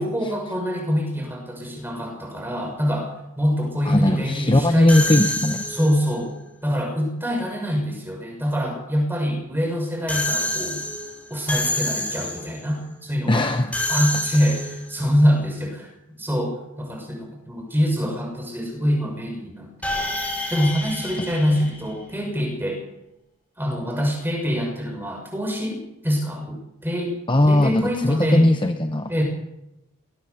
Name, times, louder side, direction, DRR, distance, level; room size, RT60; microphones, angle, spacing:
voice 1, 0.0-4.9 5.7-6.3 6.6-10.8 11.3-13.5 13.9-20.1 20.5-22.8 23.6-27.1 27.5-28.5 29.1-29.2, equal, 10° right, 1 dB, 6.5 m, -25 dB
voice 2, 3.9-5.7 13.3-13.7 27.3-29.1, left 1 dB, 20° left, 7 dB, 0.9 m, -19 dB
sound 1, 4.9-6.1 10.1-12.6 13.7-15.0 19.8-22.4, left 1 dB, 5° left, 6.3 m, -28 dB
21.0 x 18.0 x 7.1 m, 0.90 s
head